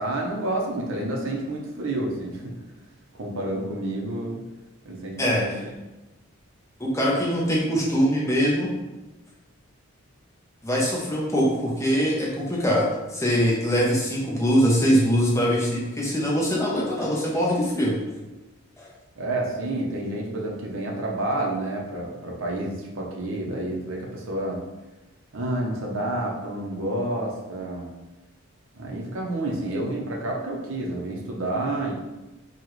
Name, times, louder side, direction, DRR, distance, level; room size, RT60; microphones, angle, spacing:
voice 1, 0.0-2.5 3.2-4.4 4.8-5.5 19.2-24.6 25.3-27.9 28.7-31.9, right 1 dB, 65° right, -2 dB, 0.8 m, -29 dB
voice 2, 6.8-8.7 10.6-18.0 18.8-18.9, equal, 15° left, -4 dB, 0.7 m, -22 dB
4.8 x 2.4 x 3.1 m, 1.1 s
head